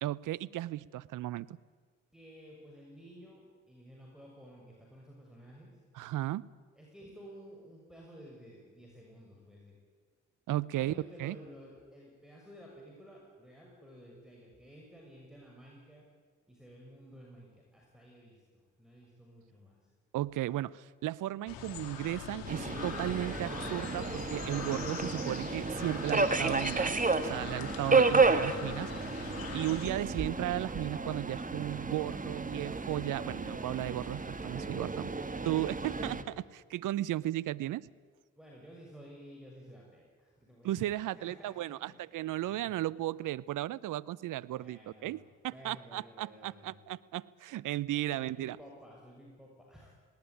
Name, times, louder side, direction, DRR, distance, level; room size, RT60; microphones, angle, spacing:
voice 1, 0.0-1.6 5.9-6.5 10.5-10.9 11.2-11.4 20.1-26.9 27.2-28.9 29.5-35.1 35.5-37.9 40.6-48.6, right 14 dB, 70° right, 19 dB, 0.7 m, -35 dB
voice 2, 2.1-5.8 6.7-9.7 10.6-16.1 16.5-19.9 35.8-35.9 38.4-41.6 41.9-42.1 42.4-42.7 44.6-45.2 45.5-46.7 48.1-49.9, equal, ahead, -2 dB, 6.8 m, -53 dB
sound 1, 21.5-29.9, left 7 dB, 80° left, 2.4 m, -43 dB
Subway metro underground, 22.5-36.2, right 4 dB, 25° right, 1.9 m, -32 dB
18.5 x 18.5 x 9.7 m, 1.5 s
hypercardioid pair, 45°, 33 cm